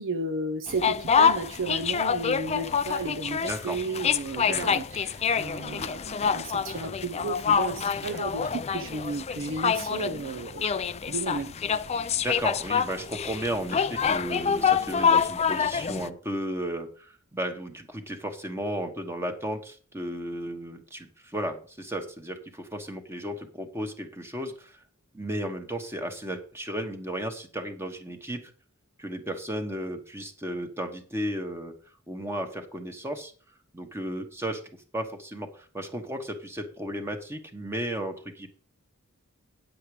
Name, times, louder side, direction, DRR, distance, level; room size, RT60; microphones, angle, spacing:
voice 1, 0.0-10.6 11.1-11.6, right 3 dB, 60° right, 7 dB, 0.7 m, -33 dB
sound 1, 0.7-16.1, left 6 dB, 30° left, 0.4 m, -26 dB
voice 2, 3.4-3.8 4.4-4.8 12.2-24.8 25.1-28.5 29.0-31.7 32.1-33.3 33.7-34.6 34.9-38.5, right 1 dB, 10° right, 5 dB, 1.3 m, -34 dB
9.6 x 7.6 x 4.9 m, 0.41 s
head